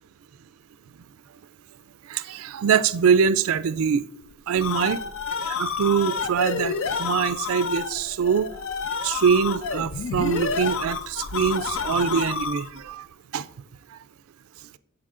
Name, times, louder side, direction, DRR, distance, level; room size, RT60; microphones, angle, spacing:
voice 1, 2.1-4.0 4.5-5.0 5.5-8.5 9.0-13.1 13.3-13.5, right 7 dB, 65° right, 0.3 m, -23 dB
sound 1, 4.3-12.8, left 5 dB, 60° left, 0.5 m, -29 dB
11.0 x 4.8 x 2.5 m
head